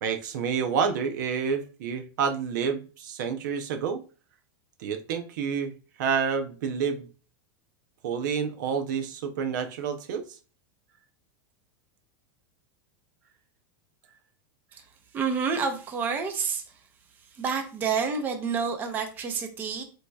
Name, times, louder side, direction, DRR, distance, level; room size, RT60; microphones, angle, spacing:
voice 1, 0.0-4.0 4.8-5.7 6.0-7.1 8.0-10.2, right 6 dB, 55° right, 0.6 m, -29 dB
voice 2, 15.1-16.6 17.4-19.8, right 5 dB, 15° right, 0.6 m, -28 dB
7.7 x 2.7 x 2.2 m
supercardioid pair, 170°, 12 cm